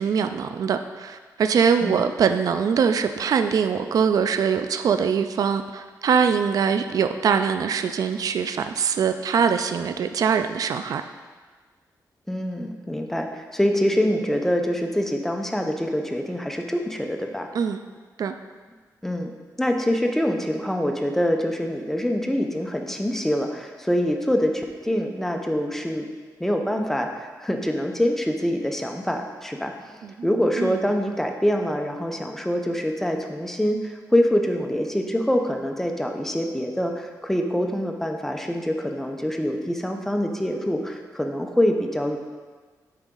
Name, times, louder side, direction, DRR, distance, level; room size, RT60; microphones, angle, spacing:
voice 1, 0.0-11.0 17.5-17.8 18.2-18.3 30.0-30.3 30.6-30.8, right 6 dB, 60° right, 8 dB, 0.3 m, -23 dB
voice 2, 12.3-17.5 19.0-19.3 19.6-26.1 26.4-42.2, equal, 5° left, 3 dB, 0.7 m, -25 dB
9.7 x 4.0 x 3.8 m, 1.4 s
cardioid pair, 100°, 7 cm